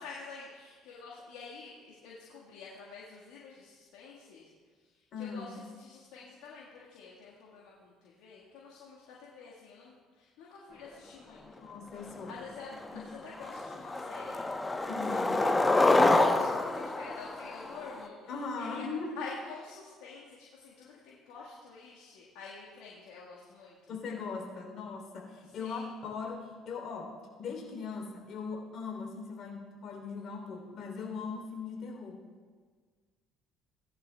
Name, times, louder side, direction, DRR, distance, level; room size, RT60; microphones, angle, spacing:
voice 1, 0.0-4.5 5.2-11.6 12.3-14.4 14.7-14.8 15.1-15.5 16.1-18.2 18.6-18.8 19.2-23.7 25.6-25.9, left 4 dB, 70° left, -6 dB, 1.6 m, -48 dB
voice 2, 5.1-5.6 11.6-12.4 12.7-13.1 14.9-15.4 18.3-19.1 23.9-32.2, left 4 dB, 50° left, 1 dB, 3.3 m, -40 dB
Skateboard, 12.3-12.4 12.8-13.1 13.4-18.1, left 2 dB, 15° left, 1.0 m, -27 dB
18.0 x 11.0 x 2.3 m, 1.6 s
hypercardioid pair, 55°, 0 cm